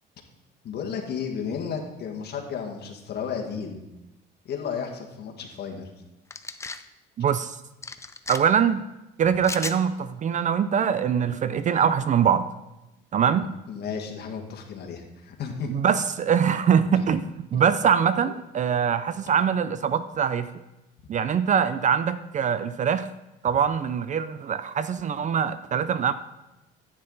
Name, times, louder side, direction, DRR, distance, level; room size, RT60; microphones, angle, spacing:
voice 1, 0.6-3.8 4.5-5.9 13.3-15.7, left 6 dB, 50° left, 2 dB, 1.9 m, -33 dB
sound 1, 6.3-6.8 7.8-8.4 9.4-9.8, left 3 dB, 15° left, 0.5 m, -34 dB
voice 2, 7.2-7.6 8.3-8.8 9.2-12.5 13.1-13.4 15.7-20.5 21.1-23.1 23.4-26.1, right 7 dB, 35° right, 13 dB, 0.5 m, -23 dB
10.5 x 8.8 x 4.0 m, 0.97 s
cardioid pair, 110°, 21 cm